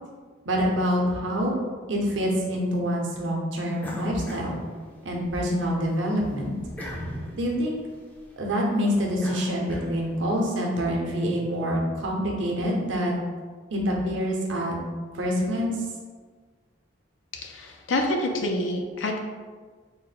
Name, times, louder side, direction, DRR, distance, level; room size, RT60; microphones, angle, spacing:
voice 1, 0.4-1.6 1.9-4.6 5.0-6.5 7.4-7.8 8.4-13.1 13.7-14.8 15.1-15.7, equal, 65° right, -1 dB, 0.7 m, -26 dB
sound 1, 3.8-5.3 5.7-10.3, equal, 10° left, 0.4 m, -40 dB
voice 2, 17.4-19.2, left 1 dB, 75° left, 2 dB, 0.5 m, -27 dB
3.5 x 2.1 x 4.0 m, 1.5 s
head